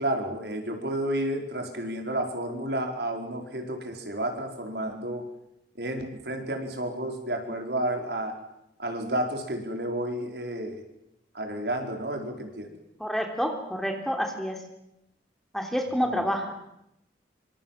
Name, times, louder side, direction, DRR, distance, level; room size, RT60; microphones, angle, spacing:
voice 1, 0.0-5.3 5.8-8.3 8.8-10.8 11.3-12.7 15.9-16.2, right 1 dB, 70° right, 4 dB, 4.9 m, -31 dB
voice 2, 13.0-14.6 15.5-16.5, equal, ahead, 3 dB, 3.5 m, -28 dB
26.5 x 26.0 x 7.6 m, 0.82 s
head